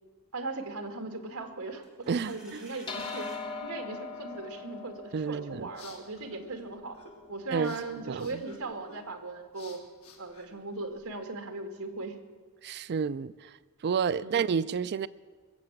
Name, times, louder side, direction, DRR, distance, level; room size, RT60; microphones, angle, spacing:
voice 1, 0.3-3.3 3.6-7.0 7.3-9.8 10.2-12.2 14.2-14.4, right 3 dB, 70° right, 2.1 m, -38 dB
sound 1, 1.8-3.4, equal, 5° right, 3.3 m, -52 dB
voice 2, 2.1-2.6 5.1-5.7 7.5-7.8 8.0-8.4 12.6-13.6 13.8-15.1, right 6 dB, 50° right, 0.4 m, -30 dB
sound 2, 2.9-7.5, left 4 dB, 25° left, 1.5 m, -41 dB
sound 3, 5.3-11.2, left 3 dB, 70° left, 2.7 m, -54 dB
21.5 x 7.7 x 8.6 m
head